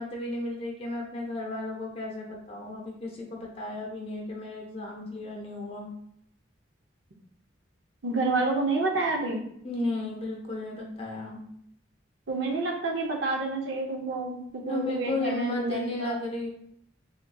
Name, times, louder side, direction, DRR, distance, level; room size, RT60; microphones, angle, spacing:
voice 1, 0.0-5.9 9.6-11.4 14.7-16.5, left 2 dB, 30° left, -1 dB, 0.6 m, -34 dB
voice 2, 8.0-9.4 12.3-14.4 14.6-16.1, right 3 dB, 70° right, 2 dB, 0.6 m, -28 dB
3.7 x 2.7 x 2.2 m, 0.70 s
head